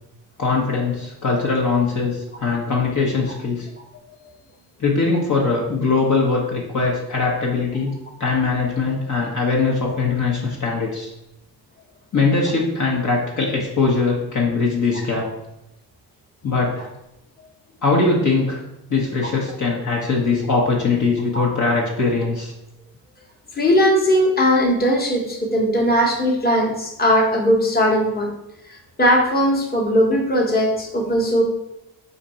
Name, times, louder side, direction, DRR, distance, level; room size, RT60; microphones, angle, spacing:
voice 1, 0.4-3.7 4.8-7.9 8.2-11.1 12.1-15.3 16.4-16.9 17.8-18.6 18.9-22.5, left 4 dB, 45° left, -2 dB, 1.0 m, -21 dB
voice 2, 23.5-28.3 29.0-31.4, equal, 20° left, -2 dB, 1.2 m, -18 dB
4.2 x 2.7 x 4.3 m, 0.87 s
cardioid pair, 75°, 41 cm